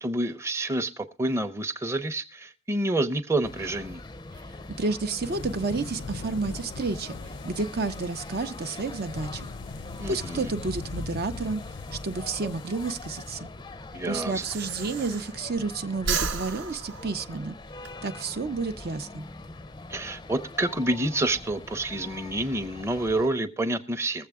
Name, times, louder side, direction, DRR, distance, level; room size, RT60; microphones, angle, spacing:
voice 1, 0.0-4.0 10.0-10.5 13.9-14.4 19.9-24.3, right 1 dB, 15° right, 0.7 m, -28 dB
sound 1, 3.4-23.3, left 2 dB, 20° left, 0.5 m, -43 dB
voice 2, 4.8-7.2 7.4-9.5 10.1-11.6 11.9-13.5 14.0-17.5 18.0-19.3, right 3 dB, 55° right, 0.6 m, -30 dB
sound 2, 5.2-13.4, left 3 dB, 70° left, 0.5 m, -40 dB
Breathing, 12.9-15.6 15.9-17.9, right 5 dB, 85° right, 0.9 m, -33 dB
21.0 x 7.5 x 3.5 m
head